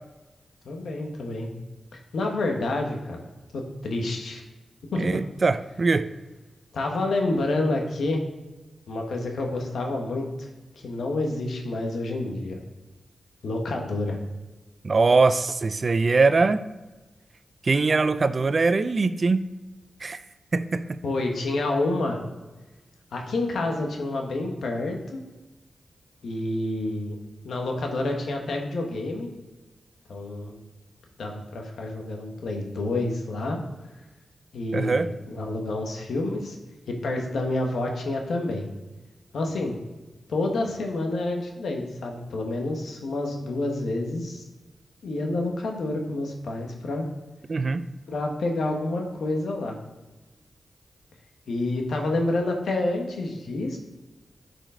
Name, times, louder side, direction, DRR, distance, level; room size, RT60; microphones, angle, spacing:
voice 1, 0.6-1.5 1.9-3.2 3.5-4.4 4.9-5.2 6.7-8.2 8.9-10.5 10.7-12.6 13.4-14.2 21.0-22.2 23.1-25.2 26.2-27.2 27.4-29.3 30.1-30.6 31.2-33.6 34.5-36.6 36.9-38.7 39.3-39.8 40.3-44.4 45.0-47.1 48.1-49.8 51.5-53.8, left 2 dB, 85° left, 2 dB, 1.4 m, -28 dB
voice 2, 5.0-6.1 14.8-16.6 17.6-19.4 20.0-20.2 20.5-21.0 34.7-35.1 47.5-47.9, right 3 dB, 50° right, 13 dB, 0.5 m, -22 dB
10.5 x 5.1 x 3.8 m, 1.1 s
cardioid pair, 55°, 0 cm